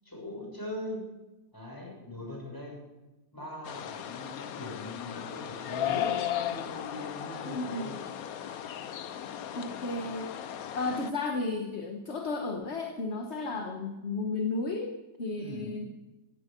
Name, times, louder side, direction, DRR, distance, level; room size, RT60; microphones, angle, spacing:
voice 1, 0.1-1.0 1.5-2.8 3.3-6.1 6.5-7.9 15.3-15.8, left 2 dB, 10° left, -2 dB, 6.9 m, -41 dB
sound 1, 3.7-11.1, left 10 dB, 60° left, 1.1 m, -36 dB
voice 2, 7.4-7.9 9.5-10.5 10.7-15.8, left 3 dB, 40° left, 4 dB, 1.4 m, -33 dB
17.0 x 15.0 x 5.3 m, 1.1 s
omnidirectional pair, 2.0 m